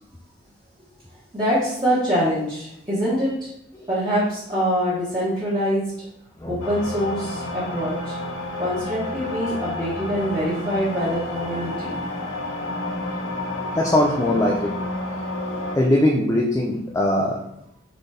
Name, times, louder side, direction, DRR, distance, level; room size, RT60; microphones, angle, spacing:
voice 1, 1.3-3.5 3.9-5.8 6.5-8.1 8.6-11.9, equal, 20° right, -11 dB, 1.2 m, -24 dB
voice 2, 6.4-6.7 9.2-9.3 13.1-13.2 13.7-14.8 15.7-17.4, left 1 dB, 15° left, -2 dB, 0.4 m, -21 dB
sound 1, 6.6-15.8, left 1 dB, 80° left, 0.7 m, -30 dB
4.1 x 3.8 x 3.4 m, 0.78 s
head